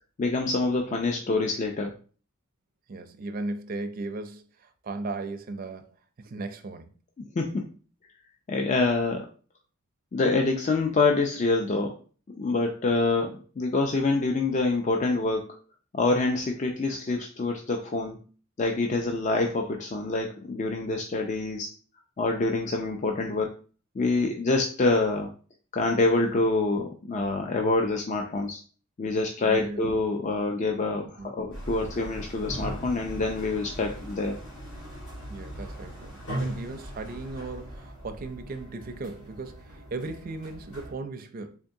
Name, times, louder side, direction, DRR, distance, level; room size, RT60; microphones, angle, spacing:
voice 1, 0.2-1.9 7.4-7.7 8.5-9.3 10.1-11.9 12.4-15.5 15.9-18.2 18.6-21.7 22.2-23.5 24.0-25.3 25.7-28.6 29.0-34.3, left 3 dB, 35° left, 0.4 m, -26 dB
voice 2, 2.9-5.9 6.2-6.9 29.4-29.8 31.2-31.3 35.3-41.6, right 3 dB, 45° right, 0.4 m, -37 dB
sound 1, 31.5-40.9, right 1 dB, 75° left, 1.7 m, -39 dB
3.6 x 3.5 x 2.6 m
head